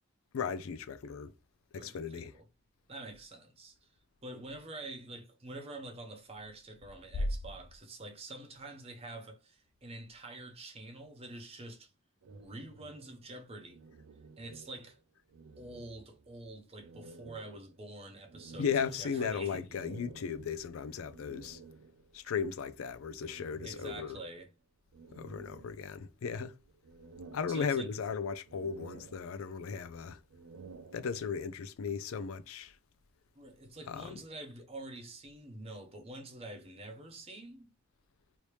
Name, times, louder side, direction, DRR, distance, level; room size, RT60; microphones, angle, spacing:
voice 1, 0.3-1.3 1.7-2.3 18.6-21.6 22.1-24.2 25.1-26.5 27.3-30.2 30.9-32.7 33.9-34.2, left 6 dB, 90° left, 0.4 m, -36 dB
voice 2, 1.8-2.5 2.9-3.9 4.2-11.9 12.4-13.8 14.4-15.0 15.6-19.6 23.6-24.5 27.5-27.9 33.4-37.7, right 2 dB, 30° right, 0.7 m, -47 dB
sound 1, 12.2-15.0 15.3-16.4 16.8-22.2 23.2-24.5 24.9-26.2 26.6-28.1 28.4-29.8 30.2-31.5, right 4 dB, 80° right, 0.4 m, -54 dB
3.0 x 2.8 x 3.2 m
head